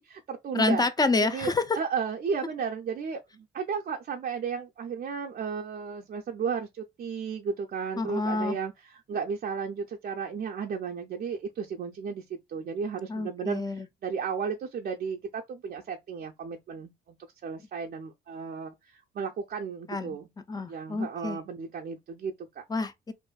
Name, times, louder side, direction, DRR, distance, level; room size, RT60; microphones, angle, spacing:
voice 1, 0.0-0.9 1.3-12.2 12.5-17.2 17.4-20.3 20.7-22.6, right 6 dB, 50° right, 0.5 m, -34 dB
voice 2, 0.5-1.6 8.0-8.6 13.1-13.9 19.9-20.2 20.5-21.4 22.7-23.1, left 3 dB, 20° left, 0.4 m, -28 dB
2.5 x 2.5 x 2.2 m
cardioid pair, 90°, 20 cm